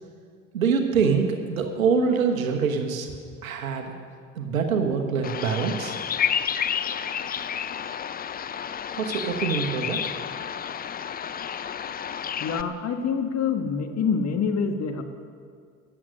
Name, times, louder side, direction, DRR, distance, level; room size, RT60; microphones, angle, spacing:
voice 1, 0.5-3.1 3.4-3.9 4.3-5.9 9.0-10.0, right 5 dB, 80° right, 5 dB, 1.3 m, -24 dB
Bird vocalization bird call bird song, 5.2-12.6, left 8 dB, 25° left, 0.5 m, -30 dB
voice 2, 12.4-15.0, left 6 dB, 40° left, 7 dB, 1.4 m, -26 dB
13.5 x 10.0 x 6.2 m, 2.1 s
figure-of-eight pair, 60°, 40 cm